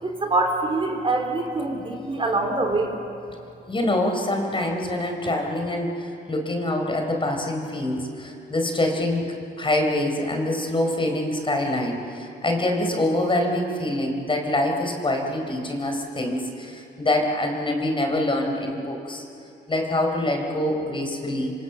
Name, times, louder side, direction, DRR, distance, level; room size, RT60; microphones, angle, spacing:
voice 1, 0.0-3.0, right 2 dB, 25° right, 2 dB, 3.7 m, -24 dB
voice 2, 3.7-19.2 19.7-21.5, left 1 dB, 25° left, 3 dB, 4.5 m, -25 dB
26.5 x 25.5 x 7.2 m, 2.7 s
cardioid pair, 90°, 20 cm